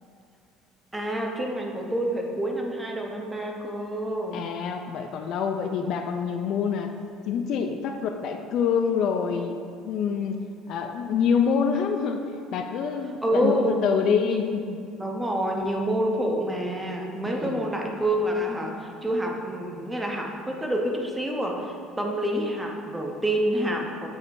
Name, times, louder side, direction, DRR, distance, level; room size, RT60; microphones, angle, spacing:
voice 1, 0.9-4.4 13.2-13.8 14.2-14.4 15.0-24.1, right 1 dB, 5° right, 0 dB, 0.5 m, -27 dB
voice 2, 4.3-6.9 7.3-9.6 9.8-10.4 10.7-13.6 13.8-14.8 17.3-17.7, left 6 dB, 45° left, 5 dB, 0.3 m, -26 dB
7.2 x 3.2 x 4.6 m, 2.5 s
cardioid pair, 175°, 0 cm